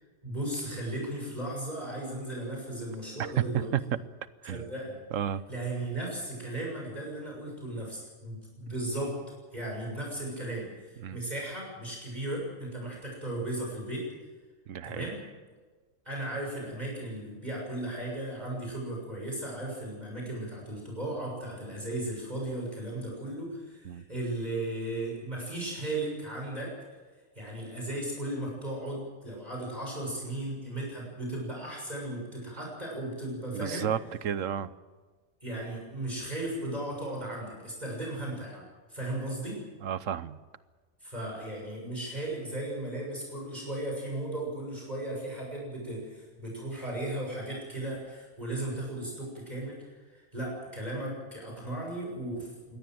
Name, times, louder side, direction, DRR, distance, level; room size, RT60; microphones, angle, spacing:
voice 1, 0.2-3.7 4.4-5.0 5.5-9.2 9.5-14.1 14.8-15.2 16.0-26.7 27.3-33.9 35.4-38.6 38.9-39.6 41.0-52.8, right 1 dB, 35° right, -2 dB, 6.8 m, -36 dB
voice 2, 5.1-5.4 11.0-11.2 14.7-15.1 23.8-24.0 33.5-34.0 34.2-34.7 39.8-40.4, right 9 dB, 85° right, 15 dB, 1.2 m, -32 dB
23.0 x 17.5 x 7.8 m, 1.3 s
omnidirectional pair, 1.3 m